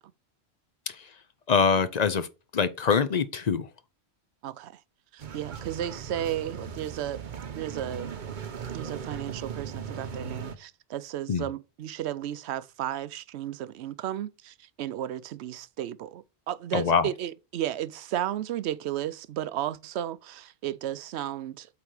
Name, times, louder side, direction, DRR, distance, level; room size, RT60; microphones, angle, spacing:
voice 1, 1.5-2.3 2.5-3.7 11.3-11.5 16.7-17.1, left 6 dB, 45° left, 0.6 m, -24 dB
voice 2, 4.4-4.8 5.1-7.2 7.5-8.1 8.7-21.7, right 11 dB, 75° right, 0.8 m, -34 dB
sound 1, 5.2-10.6, right 6 dB, 50° right, 0.9 m, -38 dB
8.3 x 3.8 x 4.8 m
omnidirectional pair, 1.1 m